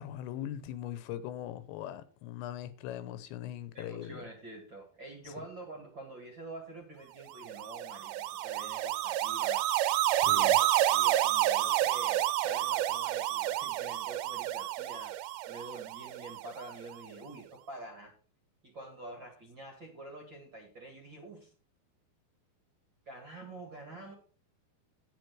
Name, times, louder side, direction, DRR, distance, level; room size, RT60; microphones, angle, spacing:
voice 1, 0.0-4.2 5.4-5.5 10.1-10.6, left 11 dB, 90° left, 3.2 m, -40 dB
voice 2, 3.7-9.6 10.1-18.1 18.6-21.5 23.1-24.1, right 2 dB, 40° right, 1.7 m, -47 dB
sound 1, 7.4-16.7, right 13 dB, 85° right, 2.8 m, -29 dB
9.4 x 8.6 x 4.7 m
omnidirectional pair, 5.0 m